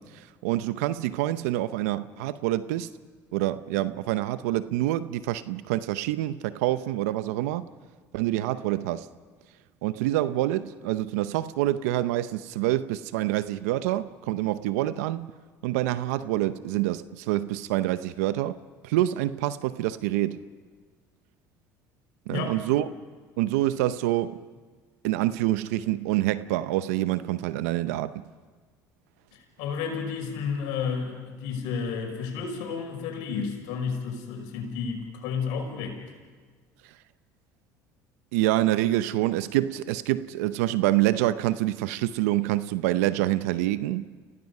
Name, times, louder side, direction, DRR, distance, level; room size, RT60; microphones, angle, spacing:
voice 1, 0.0-2.9 3.3-7.7 8.1-9.1 9.8-15.3 15.6-18.6 18.8-20.4 22.3-22.9 23.4-24.4 25.0-28.2 38.3-44.1, right 15 dB, 85° right, 0.7 m, -26 dB
voice 2, 29.3-36.0, left 6 dB, 75° left, 5.6 m, -32 dB
29.5 x 17.5 x 5.5 m
supercardioid pair, 80°, 8 cm